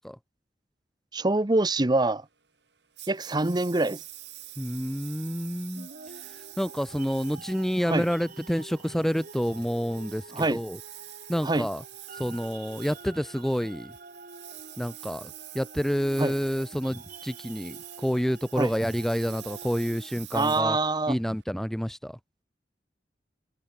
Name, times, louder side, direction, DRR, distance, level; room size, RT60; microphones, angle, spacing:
voice 1, 1.1-2.2 3.1-4.0 7.9-8.1 10.3-10.6 11.4-11.7 16.2-16.3 18.5-18.7 20.3-21.2, right 2 dB, 25° right, 0.9 m, -25 dB
Engine, 3.0-21.4, right 16 dB, 75° right, 7.3 m, -47 dB
voice 2, 4.6-5.9 6.1-10.8 11.3-11.8 12.1-13.9 14.8-20.8 21.1-22.2, equal, ahead, 0.5 m, -29 dB
sound 1, 5.8-20.2, right 3 dB, 50° right, 4.5 m, -48 dB
head